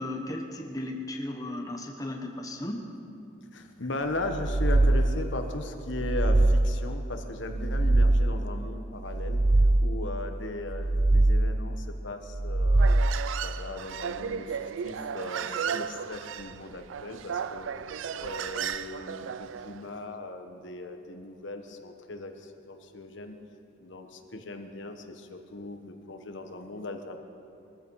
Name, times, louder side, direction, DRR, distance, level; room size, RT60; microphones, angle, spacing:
voice 1, 0.0-2.9, left 1 dB, 20° left, 2 dB, 1.1 m, -35 dB
voice 2, 3.5-9.4 9.8-12.8 13.4-17.7 18.1-23.3 23.8-27.2, left 2 dB, 70° left, 5 dB, 1.2 m, -38 dB
sound 1, 4.3-5.3 5.8-6.9 7.4-8.5 9.0-10.1 10.6-11.7 12.3-13.4, right 2 dB, 25° right, 0.4 m, -23 dB
Human voice, 12.7-19.8, right 7 dB, 80° right, 0.4 m, -35 dB
21.5 x 14.0 x 4.7 m, 2.6 s
head